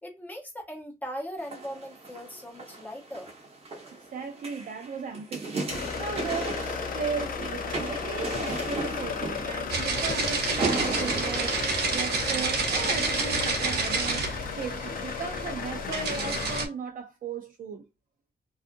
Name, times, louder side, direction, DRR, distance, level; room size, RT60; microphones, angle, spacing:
voice 1, 0.0-3.3, equal, 10° left, 0.8 m, -39 dB
sound 1, 1.4-12.6 13.2-13.3, right 3 dB, 40° right, 0.8 m, -36 dB
voice 2, 3.9-11.6 11.9-17.8, right 6 dB, 55° right, 0.4 m, -36 dB
sound 2, 5.7-16.7, left 6 dB, 60° left, 0.5 m, -34 dB
sound 3, 9.7-16.7, right 4 dB, 85° right, 0.8 m, -29 dB
2.7 x 2.4 x 2.5 m
wide cardioid pair, 165°, 16 cm